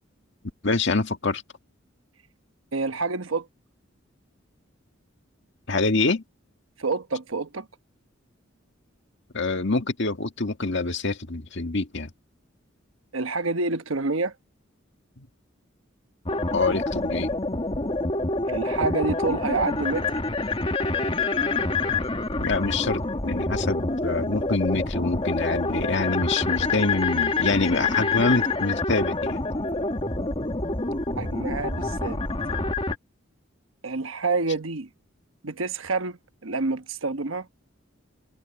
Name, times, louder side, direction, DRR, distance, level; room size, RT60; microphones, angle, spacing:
voice 1, 0.6-1.4 5.7-6.2 9.3-12.1 15.2-15.3 16.5-17.3 22.4-29.4, left 3 dB, 65° left, 1.8 m, -26 dB
voice 2, 2.7-3.5 6.8-7.7 13.1-14.3 18.5-20.1 31.2-32.2 33.8-34.9 35.4-37.5, right 3 dB, 85° right, 1.1 m, -28 dB
sound 1, 16.3-33.0, left 3 dB, 30° left, 2.0 m, -27 dB
head